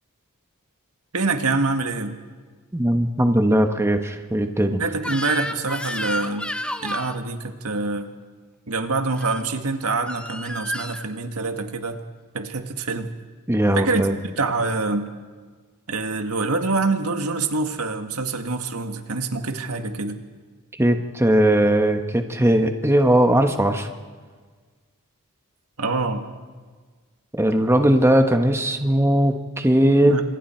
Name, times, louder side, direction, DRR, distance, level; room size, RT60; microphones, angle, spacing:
voice 1, 1.1-2.2 4.8-6.5 6.8-8.1 8.7-12.0 12.3-13.1 13.8-15.1 15.9-20.2 25.8-26.3 30.0-30.2, right 3 dB, 75° right, 6 dB, 1.7 m, -25 dB
voice 2, 2.7-4.8 13.5-14.1 20.8-23.9 27.4-30.1, right 1 dB, 10° right, 5 dB, 1.2 m, -19 dB
Crying sobbing / Screech, 5.0-7.2 9.1-9.4 10.1-11.0, left 1 dB, 5° left, 0.9 m, -31 dB
30.0 x 26.0 x 4.5 m, 1.5 s
head